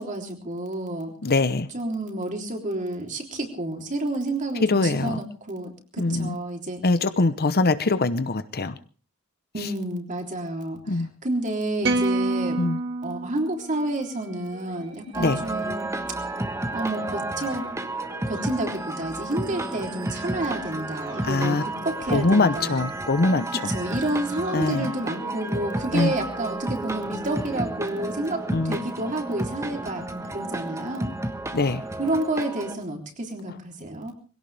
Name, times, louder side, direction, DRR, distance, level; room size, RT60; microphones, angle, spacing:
voice 1, 0.0-1.1 1.7-6.9 9.5-15.9 16.2-16.3 16.7-17.7 18.3-22.8 23.5-31.1 32.0-34.1, right 1 dB, 35° right, 3 dB, 3.5 m, -30 dB
voice 2, 1.2-1.7 4.6-5.2 6.0-6.3 6.8-8.8 10.9-11.1 12.6-12.8 15.2-15.4 21.2-21.6 22.1-23.6 24.5-24.9 25.9-26.1 28.5-28.8 31.5-31.8, left 3 dB, 45° left, 13 dB, 0.9 m, -23 dB
sound 1, 11.8-14.2, right 2 dB, 55° right, 2.0 m, -27 dB
Musical instrument, 13.6-26.6, right 3 dB, 85° right, 6.3 m, -47 dB
sound 2, 15.1-32.7, right 2 dB, 15° right, 1.3 m, -32 dB
22.0 x 17.0 x 3.5 m, 0.38 s
head